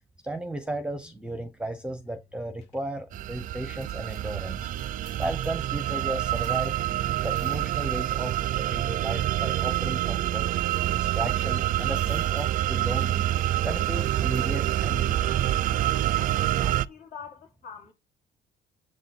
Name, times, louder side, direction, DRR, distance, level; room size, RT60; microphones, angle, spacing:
voice 1, 0.2-4.7 5.2-6.8 7.2-10.5 10.9-13.3 13.6-15.4, right 1 dB, 5° right, 0.7 m, -35 dB
sound 1, 1.7-16.4, left 7 dB, 90° left, 2.3 m, -56 dB
sound 2, 3.1-16.9, right 13 dB, 55° right, 0.4 m, -27 dB
voice 2, 16.2-17.9, left 6 dB, 65° left, 2.8 m, -45 dB
7.6 x 3.8 x 4.2 m
cardioid pair, 110°, 17 cm